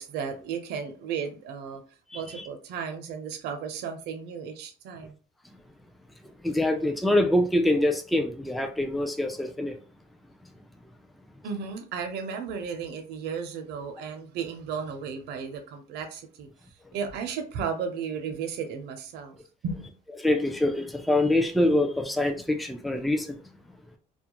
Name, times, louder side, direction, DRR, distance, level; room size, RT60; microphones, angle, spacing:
voice 1, 0.0-1.8 2.1-5.2 11.4-16.5 16.9-19.4 19.6-19.9, right 6 dB, 80° right, 0.6 m, -34 dB
voice 2, 2.1-2.5 6.4-9.8 16.8-16.9 20.2-23.4, left 1 dB, ahead, 0.3 m, -25 dB
2.3 x 2.1 x 2.9 m
cardioid pair, 110°, 17 cm